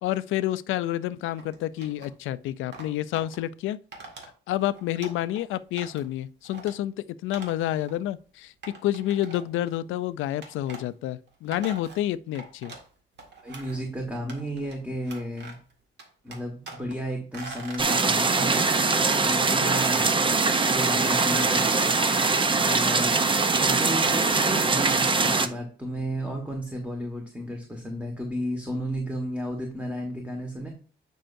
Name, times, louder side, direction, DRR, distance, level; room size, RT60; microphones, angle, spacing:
voice 1, 0.0-3.8 4.5-6.9 7.2-8.5 8.8-12.7, left 13 dB, 85° left, 0.4 m, -29 dB
sound 1, 1.4-2.1 2.7-3.4 3.9-4.3 4.6-5.4 5.8-6.1 6.4-6.7 7.3-7.6 7.9-8.0 8.6-9.7 10.4-10.8 11.3-12.9 13.2-13.9 14.3-14.8 15.0-15.7 16.0-17.0 17.3-17.9, right 3 dB, 60° right, 2.0 m, -43 dB
voice 2, 13.4-15.6 16.2-18.7 19.2-20.1 20.7-21.7 22.6-23.1 23.6-30.7, equal, 5° right, 1.5 m, -33 dB
sound 2, 17.8-25.5, right 4 dB, 25° right, 0.6 m, -22 dB
8.9 x 5.5 x 2.6 m
cardioid pair, 90°, 20 cm